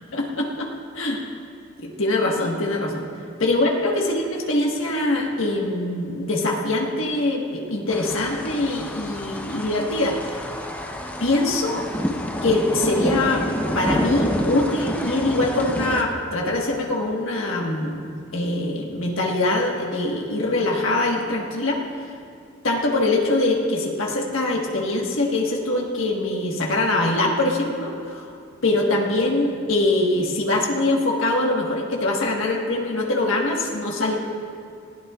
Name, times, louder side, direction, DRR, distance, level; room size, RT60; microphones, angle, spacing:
voice 1, 0.1-1.2 1.8-3.1 3.4-10.4 11.2-11.9 12.4-13.4 13.7-21.8 22.6-28.3 28.6-34.2, left 2 dB, 85° left, -1 dB, 1.5 m, -23 dB
sound 1, 7.9-16.0, left 1 dB, 10° left, 0.8 m, -28 dB
20.0 x 15.5 x 2.4 m, 2.4 s
head